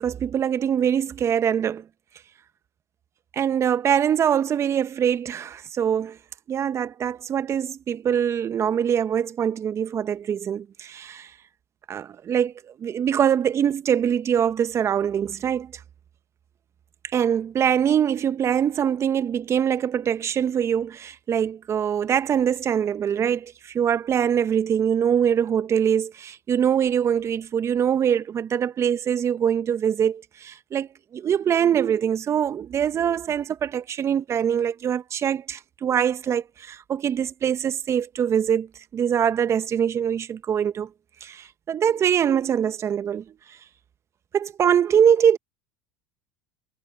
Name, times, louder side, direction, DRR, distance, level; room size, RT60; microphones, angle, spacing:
voice 1, 0.0-1.8 3.3-6.2 6.5-11.3 11.9-12.5 12.8-15.7 17.1-38.7 38.9-40.9 41.2-43.2 44.3-45.4, right 8 dB, 35° right, 1.5 m, -23 dB
hypercardioid pair, 90°, 8 cm